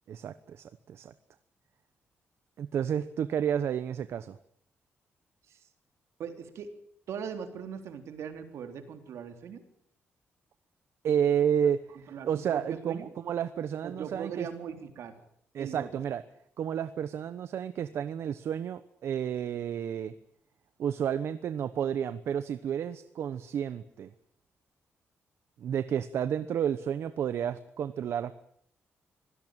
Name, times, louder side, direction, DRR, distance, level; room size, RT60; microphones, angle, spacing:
voice 1, 0.1-1.1 2.6-4.4 11.0-14.5 15.5-16.2 16.6-20.1 20.8-24.1 25.6-28.5, right 8 dB, 65° right, 12 dB, 1.0 m, -31 dB
voice 2, 6.2-6.7 7.1-9.6 11.9-13.1 13.8-15.2 15.6-16.0, right 7 dB, 80° right, 7 dB, 3.7 m, -40 dB
25.0 x 17.5 x 9.1 m, 0.67 s
wide cardioid pair, 165°, 5 cm